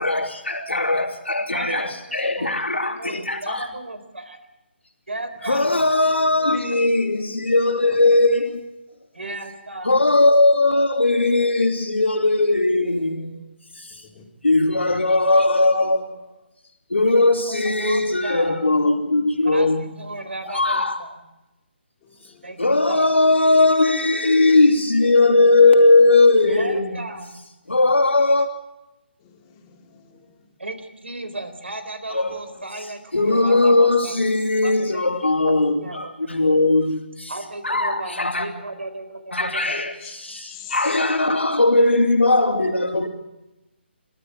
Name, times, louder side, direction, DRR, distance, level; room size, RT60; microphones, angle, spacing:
voice 1, 0.0-3.7 5.4-8.7 9.8-13.4 13.7-14.0 14.4-16.3 16.9-19.9 20.4-21.0 22.6-27.0 27.7-28.5 32.1-32.6 33.1-37.4 37.6-38.5 39.3-43.1, left 2 dB, 85° left, 3 dB, 3.1 m, -19 dB
voice 2, 1.5-4.4 5.1-6.7 9.1-9.9 17.5-18.6 19.4-19.7 20.0-21.1 22.4-23.1 26.4-27.3 30.6-34.1 34.6-36.4 37.3-39.8, right 2 dB, 75° right, 10 dB, 4.0 m, -35 dB
voice 3, 22.0-22.5 29.2-30.0 40.0-40.8, left 11 dB, 25° left, 1 dB, 3.2 m, -45 dB
29.0 x 13.0 x 7.7 m, 0.96 s
figure-of-eight pair, 145°, 6 cm